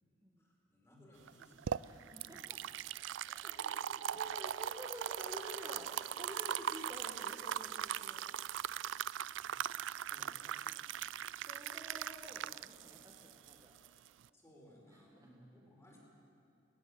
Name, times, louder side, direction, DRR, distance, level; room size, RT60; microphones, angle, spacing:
voice 1, 0.4-2.4 3.4-3.7 10.1-10.3 14.3-16.0, equal, 15° left, -3 dB, 4.9 m, -61 dB
sound 1, 1.3-14.3, right 10 dB, 85° right, 0.4 m, -40 dB
voice 2, 1.8-2.6 3.3-8.3 10.4-10.9 11.3-13.8 14.9-15.3, equal, 20° right, -3 dB, 2.0 m, -51 dB
19.0 x 18.5 x 8.0 m, 2.8 s
head